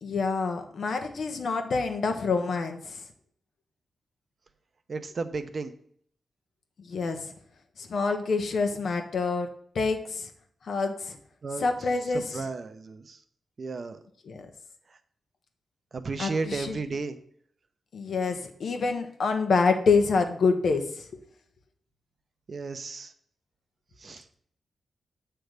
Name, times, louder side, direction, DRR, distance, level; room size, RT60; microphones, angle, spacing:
voice 1, 0.0-3.0 6.8-7.2 7.8-9.5 9.7-10.3 10.6-11.2 11.6-12.4 14.2-14.5 16.2-16.8 17.9-21.0, left 4 dB, 70° left, 5 dB, 1.1 m, -27 dB
voice 2, 4.9-5.7 11.4-11.7 12.3-13.2 13.6-14.0 15.9-17.2 22.5-23.1 24.0-24.2, right 4 dB, 50° right, 10 dB, 0.7 m, -33 dB
7.7 x 3.4 x 6.5 m, 0.63 s
cardioid pair, 75°, 0 cm